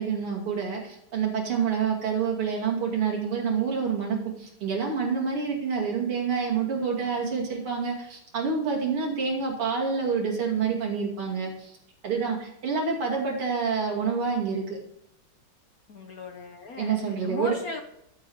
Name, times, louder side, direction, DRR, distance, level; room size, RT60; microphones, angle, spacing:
voice 1, 0.0-11.8 12.0-14.8 16.8-17.6, right 5 dB, 80° right, -1 dB, 3.5 m, -27 dB
voice 2, 15.9-17.8, left 3 dB, 55° left, 5 dB, 1.1 m, -37 dB
13.5 x 7.4 x 4.7 m, 0.79 s
omnidirectional pair, 2.4 m